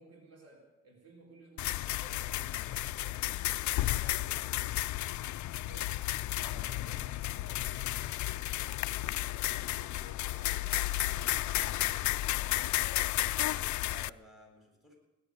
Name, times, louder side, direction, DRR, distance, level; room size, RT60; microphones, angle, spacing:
voice 1, 0.0-3.6 5.3-5.9 6.5-10.7 11.1-11.9, right 2 dB, 55° right, 0 dB, 4.6 m, -57 dB
sound 1, 1.6-14.1, left 16 dB, 70° left, 0.5 m, -33 dB
voice 2, 3.8-4.6 6.4-6.8 13.8-15.0, right 1 dB, ahead, 1 dB, 7.3 m, -55 dB
17.5 x 12.0 x 6.6 m, 1.1 s
cardioid pair, 90°, 30 cm